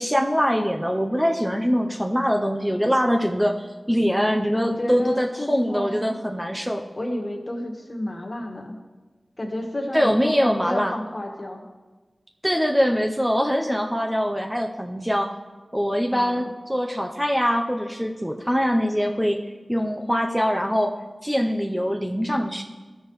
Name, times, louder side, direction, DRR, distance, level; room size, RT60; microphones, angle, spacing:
voice 1, 0.0-6.8 9.9-10.9 12.4-15.3 15.7-19.4 19.7-20.9 21.2-22.6, equal, 10° right, 2 dB, 0.7 m, -23 dB
voice 2, 4.6-6.2 7.0-8.8 9.4-11.6 16.1-16.6, left 1 dB, 50° left, 1 dB, 1.7 m, -31 dB
14.0 x 6.4 x 3.2 m, 1.3 s
cardioid pair, 40°, 0 cm